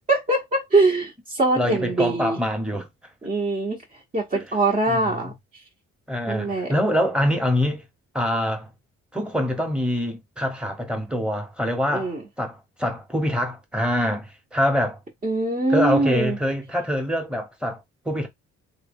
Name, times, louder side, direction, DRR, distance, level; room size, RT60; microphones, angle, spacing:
voice 1, 0.1-2.4 3.2-3.8 4.1-5.3 6.3-6.7 11.9-12.2 15.2-16.4, right 2 dB, 25° right, 1.1 m, -22 dB
voice 2, 1.6-2.9 4.3-4.4 4.9-5.3 6.1-7.8 8.1-8.7 9.1-15.0 15.7-18.3, equal, 5° right, 1.1 m, -25 dB
3.3 x 2.3 x 3.5 m
cardioid pair, 90°, 30 cm